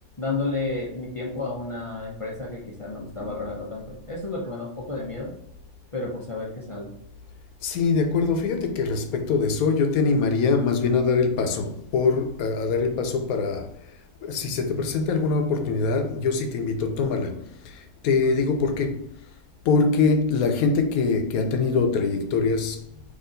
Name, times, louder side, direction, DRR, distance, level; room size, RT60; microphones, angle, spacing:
voice 1, 0.2-5.3 5.9-6.9, left 3 dB, 30° left, 0.7 m, -31 dB
voice 2, 7.6-13.8 14.2-19.1 19.6-23.0, left 4 dB, 85° left, 1.1 m, -23 dB
4.3 x 3.1 x 3.8 m
omnidirectional pair, 1.5 m